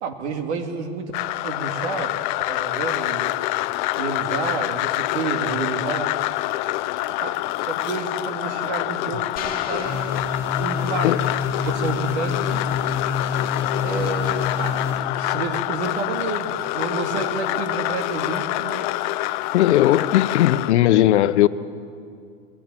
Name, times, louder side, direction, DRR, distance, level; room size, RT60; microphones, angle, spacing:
voice 1, 0.0-1.1 1.4-2.1 2.5-3.4 4.0-6.1 7.1-10.2 10.6-11.4 11.6-12.7 13.8-19.0, right 4 dB, 75° right, 2.4 m, -30 dB
sound 1, 1.1-20.7, left 17 dB, 45° left, 0.6 m, -26 dB
sound 2, 9.4-11.1, left 7 dB, 25° left, 2.6 m, -36 dB
sound 3, 9.8-15.0, left 5 dB, 10° right, 3.1 m, -27 dB
voice 2, 19.5-21.5, left 13 dB, 75° left, 0.9 m, -17 dB
21.0 x 15.5 x 9.0 m
supercardioid pair, 155°, 34 cm